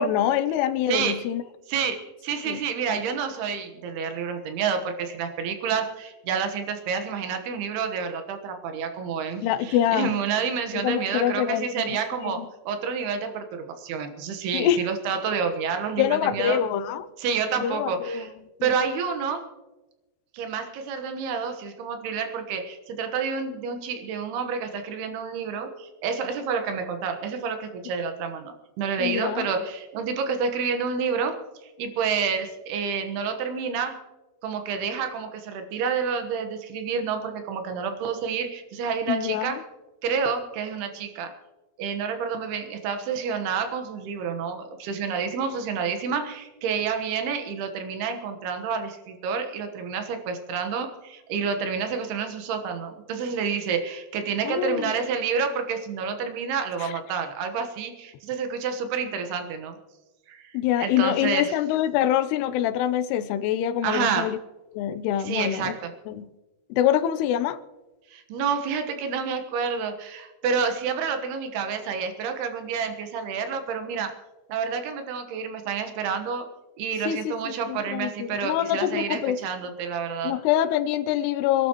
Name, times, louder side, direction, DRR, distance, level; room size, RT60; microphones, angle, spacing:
voice 1, 0.0-1.4 2.5-2.6 9.4-10.1 10.7-11.9 12.2-12.5 14.5-14.9 16.0-17.1 17.6-18.3 18.6-18.8 29.0-29.5 39.1-39.6 54.4-54.9 56.8-56.9 60.5-64.4 64.7-65.7 66.1-66.3 66.7-67.6 77.1-79.4 80.2-81.7, left 11 dB, 90° left, 2.8 m, -25 dB
voice 2, 0.9-1.2 1.7-16.6 17.2-18.3 18.6-19.5 20.3-31.4 31.8-34.0 34.4-39.6 40.0-41.3 41.8-59.8 60.3-61.5 63.8-64.3 65.2-65.9 68.1-74.1 74.5-76.5 76.8-80.3, right 6 dB, 80° right, 3.3 m, -29 dB
26.5 x 12.0 x 3.0 m
omnidirectional pair, 4.6 m